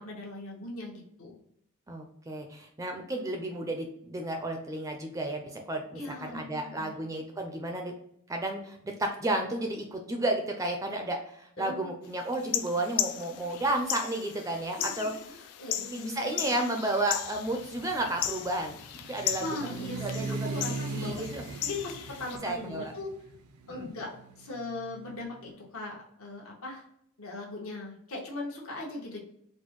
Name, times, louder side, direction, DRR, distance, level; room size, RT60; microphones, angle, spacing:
voice 1, 0.0-1.4 5.9-7.0 11.6-11.9 14.8-16.7 19.4-21.3 21.6-23.1 23.7-24.1 24.4-26.8 27.2-29.2, left 2 dB, 70° left, -1 dB, 1.1 m, -39 dB
voice 2, 1.9-7.9 8.3-15.1 15.6-18.8 19.1-19.4 19.7-20.6 20.9-21.4 22.4-22.9 23.7-23.9, right 1 dB, 15° right, 3 dB, 0.4 m, -32 dB
sound 1, 12.3-22.4, left 11 dB, 85° left, 0.3 m, -36 dB
sound 2, 17.2-25.2, right 3 dB, 75° right, 0.4 m, -40 dB
4.2 x 2.1 x 3.0 m, 0.73 s
head